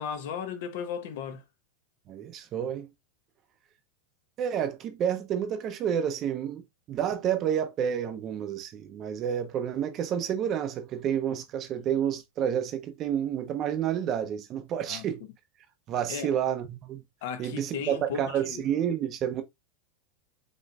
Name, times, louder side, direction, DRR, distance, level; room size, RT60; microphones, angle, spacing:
voice 1, 0.0-1.4 14.9-15.1 16.1-16.3 17.2-18.6, left 7 dB, 60° left, 0.9 m, -35 dB
voice 2, 2.1-2.9 4.4-15.2 15.9-17.0 17.4-19.4, right 9 dB, 30° right, 0.7 m, -30 dB
5.4 x 3.0 x 2.4 m
supercardioid pair, 160°, 0 cm